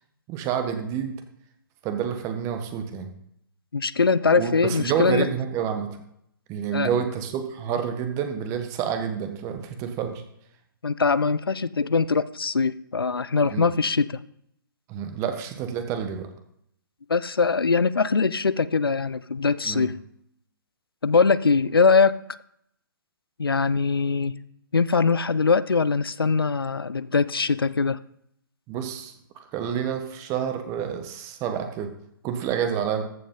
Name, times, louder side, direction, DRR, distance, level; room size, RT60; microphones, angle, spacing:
voice 1, 0.3-1.1 1.8-3.1 4.3-5.9 6.5-10.2 13.4-13.7 14.9-16.3 19.6-19.9 28.7-29.1 29.5-31.9 32.2-33.0, right 8 dB, 25° right, 6 dB, 1.4 m, -28 dB
voice 2, 3.7-5.3 6.7-6.9 10.8-14.2 17.1-20.0 21.0-22.2 23.4-24.4 24.7-28.0, left 4 dB, 85° left, 17 dB, 0.6 m, -22 dB
14.5 x 5.3 x 5.6 m, 0.73 s
figure-of-eight pair, 130°, 12 cm